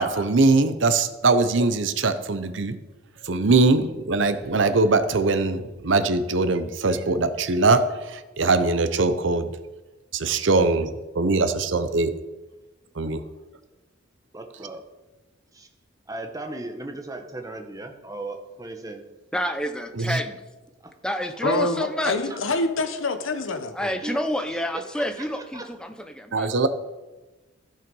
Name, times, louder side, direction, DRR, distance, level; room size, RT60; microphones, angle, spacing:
voice 1, 0.0-2.8 3.2-9.5 10.1-12.1 12.9-13.2 19.9-20.2 26.3-26.7, right 3 dB, 70° right, 0.7 m, -21 dB
voice 2, 14.3-14.8 15.5-15.7 16.1-19.0 20.8-20.9 22.3-22.4 24.0-24.2 24.5-25.6, right 2 dB, 15° right, 1.0 m, -37 dB
voice 3, 19.3-20.4 21.0-22.1 23.7-26.5, equal, 5° left, 0.7 m, -28 dB
voice 4, 21.4-24.0, left 2 dB, 85° left, 1.1 m, -26 dB
14.5 x 5.8 x 5.4 m
head